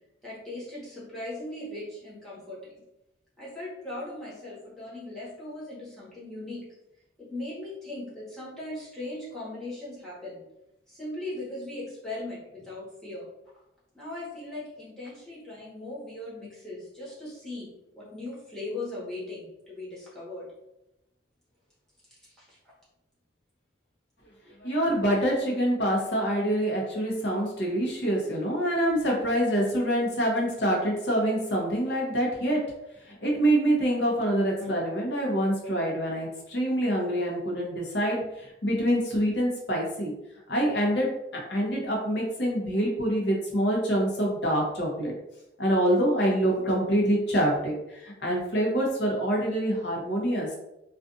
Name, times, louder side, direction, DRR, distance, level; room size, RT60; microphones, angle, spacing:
voice 1, 0.2-2.8 3.4-6.7 7.2-10.4 10.9-13.3 13.9-20.5 22.1-22.6 34.6-34.7, left 2 dB, 5° left, -9 dB, 1.0 m, -39 dB
voice 2, 24.6-32.6 33.0-40.1 40.5-45.1 45.6-50.5, right 1 dB, 65° left, -2 dB, 0.8 m, -26 dB
2.4 x 2.4 x 2.5 m, 0.88 s
head